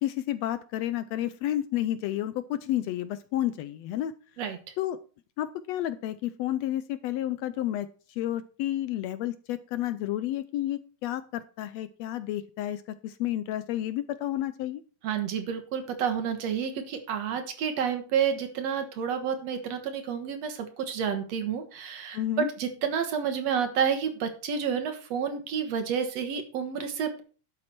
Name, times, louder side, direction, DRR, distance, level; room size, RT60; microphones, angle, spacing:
voice 1, 0.0-4.1 4.8-5.0 5.4-7.9 8.2-14.8 22.1-22.5, left 13 dB, 75° left, 13 dB, 1.6 m, -31 dB
voice 2, 15.0-27.2, right 7 dB, 65° right, 7 dB, 2.4 m, -30 dB
12.0 x 7.5 x 4.5 m, 0.38 s
omnidirectional pair, 3.3 m